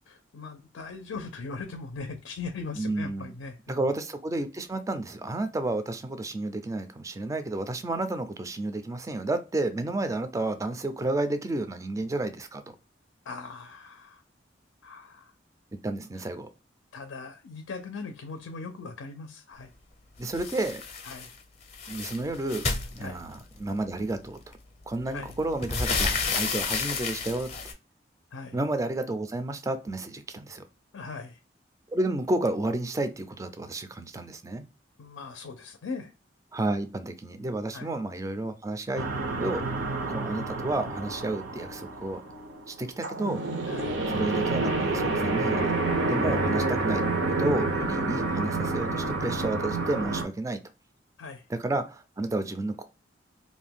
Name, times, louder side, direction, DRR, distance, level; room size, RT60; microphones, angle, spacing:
voice 1, 0.1-3.8 13.3-14.2 14.8-15.3 16.9-19.7 21.0-21.3 23.0-23.2 25.1-25.4 28.3-28.6 30.9-31.4 35.0-36.1 37.7-37.9 43.7-44.0 51.2-51.4, left 4 dB, 90° left, 7 dB, 0.4 m, -39 dB
voice 2, 2.8-3.3 3.7-12.6 15.8-16.5 20.2-20.8 21.9-22.7 23.0-24.4 24.9-27.5 28.5-30.6 31.9-34.7 36.5-39.1 39.4-39.6 40.1-42.2 42.7-43.4 44.1-45.8 46.1-47.0 47.4-50.6 51.5-52.9, right 2 dB, 15° right, 9 dB, 0.3 m, -31 dB
sound 1, 20.3-21.3 21.6-23.6 24.5-24.6 25.0-27.7, left 4 dB, 35° left, 0.5 m, -31 dB
sound 2, 39.0-50.2, right 2 dB, 85° right, 0.6 m, -29 dB
2.5 x 2.2 x 3.3 m, 0.32 s
head